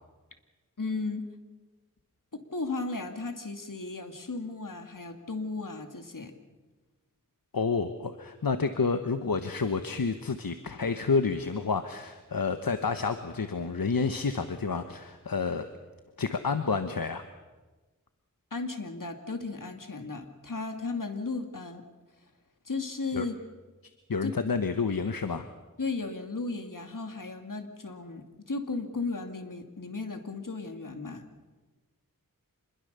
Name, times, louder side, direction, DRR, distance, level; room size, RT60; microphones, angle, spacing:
voice 1, 0.8-1.3 2.3-6.3 18.5-21.8 22.6-23.4 24.2-24.3 25.8-31.3, left 3 dB, 65° left, 6 dB, 2.5 m, -35 dB
voice 2, 7.5-15.7 16.2-17.2 23.1-23.3 24.1-25.4, left 4 dB, 80° left, 9 dB, 1.2 m, -29 dB
26.5 x 21.5 x 6.8 m, 1.2 s
wide cardioid pair, 50°, 34 cm